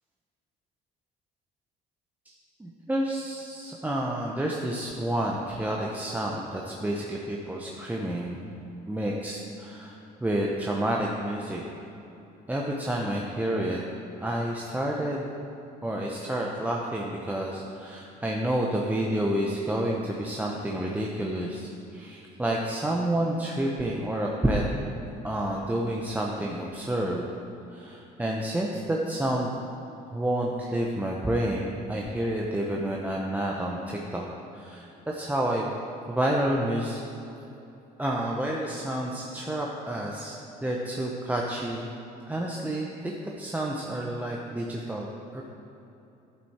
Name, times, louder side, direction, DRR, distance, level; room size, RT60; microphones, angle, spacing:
voice 1, 2.6-8.5 8.9-11.6 12.5-13.8 14.2-15.3 15.8-24.6 25.2-27.3 27.7-29.5 30.1-34.3 34.5-35.7 36.1-37.1 38.0-40.3 40.6-41.9 42.3-45.4, right 1 dB, 10° right, -2 dB, 0.8 m, -29 dB
10.5 x 7.8 x 4.3 m, 2.9 s
cardioid pair, 110°, 17 cm